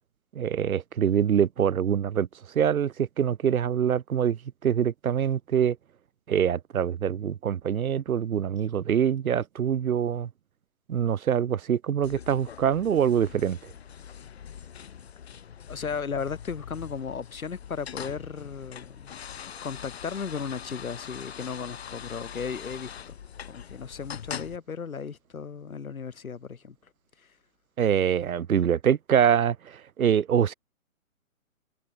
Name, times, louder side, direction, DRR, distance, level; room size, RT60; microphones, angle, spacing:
voice 1, 0.3-2.3 2.5-5.8 6.3-10.3 10.9-13.6 27.8-30.5, right 8 dB, 85° right, 1.0 m, -24 dB
sound 1, 12.0-24.6, left 8 dB, 50° left, 2.3 m, -42 dB
voice 2, 15.7-19.1 19.6-23.2 23.4-26.8 27.2-27.3, left 6 dB, 80° left, 4.7 m, -35 dB
hypercardioid pair, 170°, 41 cm